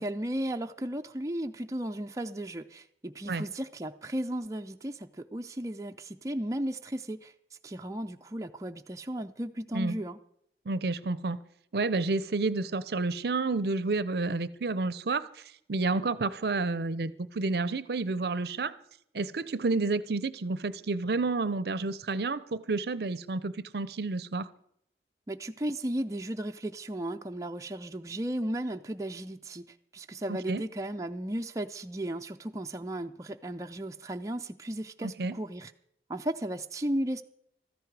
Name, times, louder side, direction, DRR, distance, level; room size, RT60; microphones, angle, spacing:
voice 1, 0.0-7.3 7.6-10.2 25.3-29.6 29.9-35.7 36.1-37.2, right 1 dB, 20° right, 5 dB, 0.4 m, -35 dB
voice 2, 10.7-11.4 11.7-15.3 15.7-18.7 19.1-24.5 30.3-30.6 35.0-35.4, right 3 dB, 65° right, 17 dB, 0.6 m, -30 dB
15.0 x 13.5 x 4.7 m, 0.71 s
head